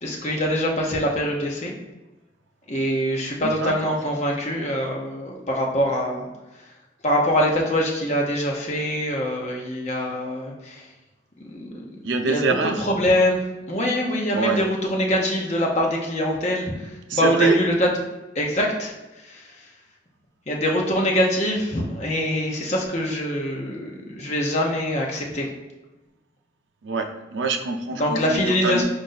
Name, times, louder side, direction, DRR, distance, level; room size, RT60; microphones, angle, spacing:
voice 1, 0.0-1.7 2.7-6.3 6.6-6.7 7.0-10.9 11.4-11.8 12.2-12.4 12.8-13.4 13.7-17.9 18.3-19.7 20.5-25.5 27.9-28.8, equal, 35° left, -1 dB, 0.8 m, -24 dB
voice 2, 3.4-4.0 12.0-12.8 14.3-14.6 17.1-17.6 26.8-28.8, right 3 dB, 85° right, 5 dB, 0.5 m, -25 dB
4.8 x 2.6 x 4.0 m, 1.1 s
head